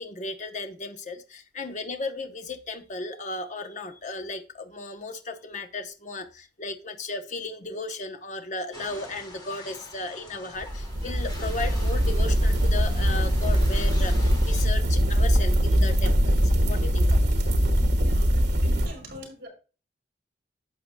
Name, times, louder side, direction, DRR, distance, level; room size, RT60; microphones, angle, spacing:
voice 1, 0.0-16.3 16.6-17.5, left 3 dB, 45° left, 6 dB, 0.8 m, -35 dB
sound 1, 8.7-14.7, left 1 dB, 25° left, 2.1 m, -45 dB
sound 2, 10.6-18.9, equal, 75° right, 1.4 m, -22 dB
voice 2, 18.0-19.5, equal, 55° right, 2 dB, 4.8 m, -43 dB
11.0 x 7.6 x 2.2 m, 0.34 s
head